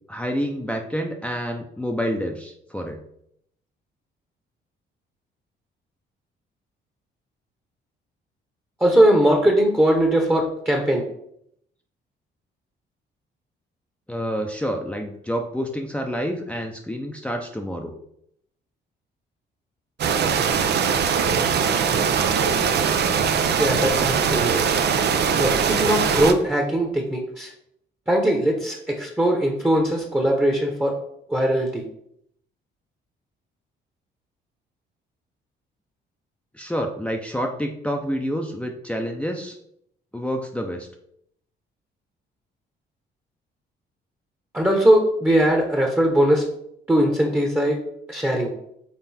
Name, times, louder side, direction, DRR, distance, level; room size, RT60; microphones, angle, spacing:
voice 1, 0.1-3.0 14.1-17.9 36.5-39.6 40.1-40.9, equal, 5° left, 1 dB, 0.7 m, -28 dB
voice 2, 8.8-11.0 23.6-24.7 25.4-27.5 28.1-31.0 31.3-31.8 44.5-46.5 46.9-47.8 48.1-48.5, right 1 dB, 10° right, 1 dB, 1.1 m, -20 dB
sound 1, 20.0-26.3, right 6 dB, 60° right, 0.6 m, -21 dB
5.9 x 3.9 x 4.2 m, 0.73 s
cardioid pair, 90°, 20 cm